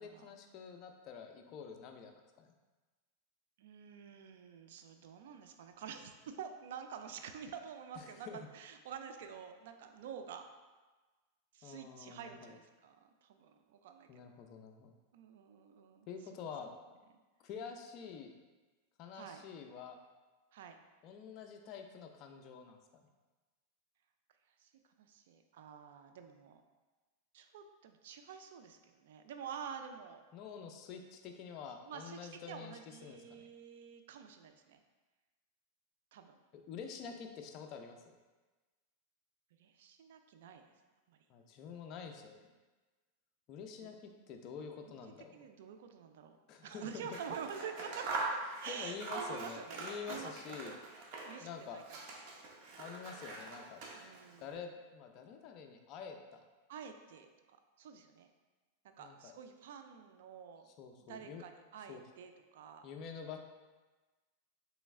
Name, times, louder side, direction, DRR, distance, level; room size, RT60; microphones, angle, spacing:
voice 1, 0.0-2.1 2.4-2.6 8.0-8.4 11.6-12.5 14.1-14.9 16.1-16.7 17.4-18.3 19.0-20.0 21.0-22.8 30.3-33.4 36.5-38.1 41.3-42.5 43.5-45.5 46.5-47.1 48.7-50.7 51.3-51.8 52.8-53.8 54.4-56.5 59.0-59.3 60.7-61.4 61.9-62.0 62.8-63.4, left 6 dB, 45° left, 4 dB, 0.4 m, -47 dB
voice 2, 3.6-10.5 11.5-13.0 13.2-14.1 15.1-16.4 19.1-19.4 20.5-20.8 24.6-24.7 25.0-26.6 27.3-30.2 31.8-34.8 36.1-36.4 39.6-40.7 41.1-41.2 43.8-43.9 45.3-46.4 46.6-48.2 48.6-50.8 51.2-51.8 53.9-54.6 56.7-58.3 58.8-60.7 61.1-62.9, right 7 dB, 75° right, 6 dB, 0.3 m, -48 dB
Scissors, 47.0-51.5 51.8-54.3, right 3 dB, 50° right, 0.7 m, -43 dB
3.1 x 3.0 x 3.5 m, 1.3 s
supercardioid pair, 130°, 0 cm